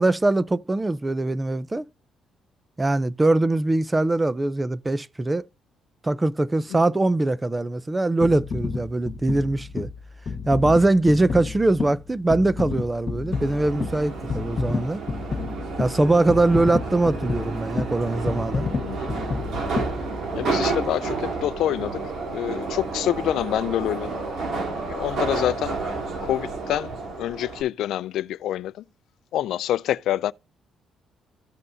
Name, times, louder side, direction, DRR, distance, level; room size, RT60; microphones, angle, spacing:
voice 1, 0.0-1.8 2.8-5.4 6.0-9.9 10.5-15.0 15.8-18.7, right 2 dB, 20° right, 0.6 m, -22 dB
sound 1, 8.2-20.6 21.2-21.3, left 4 dB, 45° left, 1.8 m, -31 dB
Subway metro underground, 13.3-27.6, right 4 dB, 65° right, 2.5 m, -31 dB
voice 2, 18.8-19.2 20.3-22.0 22.3-24.1 24.8-25.8 26.2-26.9 27.2-28.7 29.3-30.3, left 12 dB, 80° left, 0.3 m, -26 dB
14.5 x 5.4 x 2.7 m
cardioid pair, 90°, 0 cm